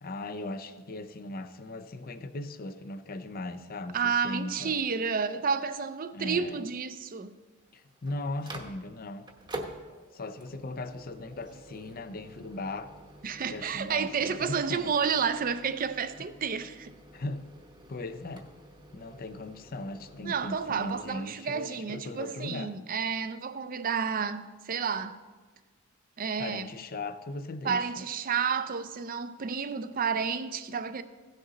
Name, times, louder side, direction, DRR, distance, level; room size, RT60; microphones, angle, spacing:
voice 1, 0.0-4.7 6.1-6.6 7.7-9.3 10.1-13.0 13.5-14.9 17.1-17.5 17.9-18.5 18.9-22.8 26.4-28.0, left 2 dB, 45° left, 0.5 m, -38 dB
voice 2, 3.9-7.3 13.2-16.9 20.2-25.2 26.2-26.7 27.6-31.0, right 6 dB, 40° right, 0.5 m, -30 dB
Microwave oven, 7.6-21.2, right 2 dB, 20° right, 0.9 m, -48 dB
16.0 x 6.6 x 4.0 m
head